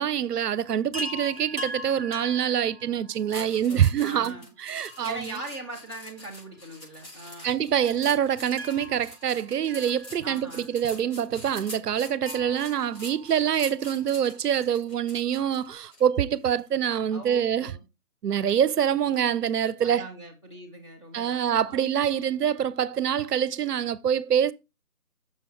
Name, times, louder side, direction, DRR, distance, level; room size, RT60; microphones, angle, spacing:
voice 1, 0.0-4.3 4.6-5.3 7.4-17.7 18.2-20.0 21.1-24.5, right 9 dB, 85° right, 0.6 m, -25 dB
Chime, 0.9-3.4 4.8-6.3 6.6-6.7 7.9-10.6 12.2-13.9 15.4-15.5 15.7-15.8, equal, 45° right, 0.6 m, -41 dB
sound 1, 3.3-16.0 16.4-16.7, left 1 dB, 60° left, 4.1 m, -45 dB
voice 2, 3.3-4.5 5.0-7.6 10.2-10.8 17.1-17.8 19.8-21.8, right 2 dB, 20° left, 1.1 m, -41 dB
6.2 x 4.2 x 4.1 m
figure-of-eight pair, 170°, 46 cm